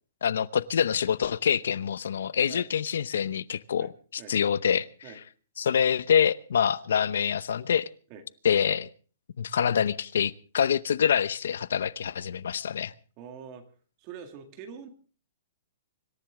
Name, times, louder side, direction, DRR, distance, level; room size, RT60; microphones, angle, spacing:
voice 1, 0.2-4.9 5.6-7.9 8.4-8.9 9.4-12.9, left 8 dB, 70° left, 0.8 m, -26 dB
voice 2, 13.2-13.6 14.0-14.9, right 7 dB, 25° right, 2.0 m, -44 dB
25.5 x 13.5 x 3.7 m
hypercardioid pair, 175°, 0 cm